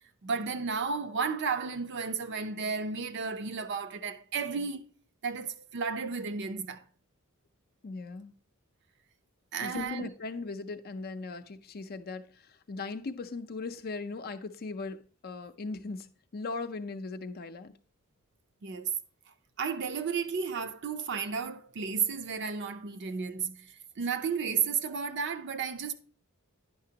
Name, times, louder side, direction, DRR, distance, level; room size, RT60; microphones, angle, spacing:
voice 1, 0.2-4.8 5.2-6.8 9.5-10.1 18.6-18.9 19.6-25.9, right 5 dB, 55° right, 0.6 m, -33 dB
voice 2, 7.8-8.3 9.6-17.7, left 3 dB, 45° left, 0.5 m, -38 dB
9.4 x 5.9 x 2.8 m
head